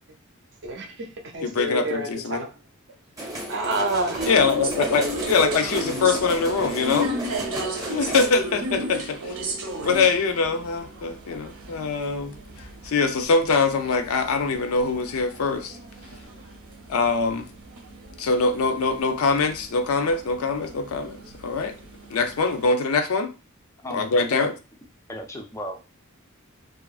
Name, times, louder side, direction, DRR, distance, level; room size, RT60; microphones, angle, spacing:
voice 1, 0.6-2.5 3.5-4.3 5.2-5.3, right 2 dB, 55° right, 0.6 m, -29 dB
voice 2, 1.4-2.4 4.3-7.1 7.9-9.4 9.8-12.3 12.8-15.8 16.9-17.4 18.2-21.2 21.4-21.7 22.1-23.3 23.9-24.5, left 4 dB, 80° left, 0.4 m, -23 dB
sound 1, 3.2-8.3, right 1 dB, 15° right, 0.7 m, -34 dB
sound 2, 4.2-22.7, right 1 dB, 90° right, 0.7 m, -35 dB
voice 3, 23.8-24.5 25.1-25.8, equal, 15° left, 0.3 m, -35 dB
2.8 x 2.4 x 2.3 m
head